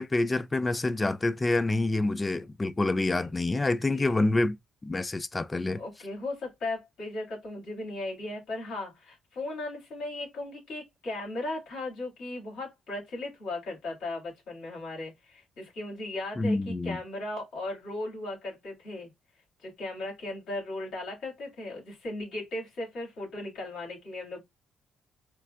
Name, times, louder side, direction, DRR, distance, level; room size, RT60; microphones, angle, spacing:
voice 1, 0.0-4.6 4.8-5.8 16.4-17.0, left 2 dB, 20° left, 0.3 m, -27 dB
voice 2, 3.9-4.3 5.7-19.1 19.6-24.4, left 2 dB, 75° left, 2.5 m, -37 dB
4.4 x 2.1 x 2.5 m
cardioid pair, 90°, 0 cm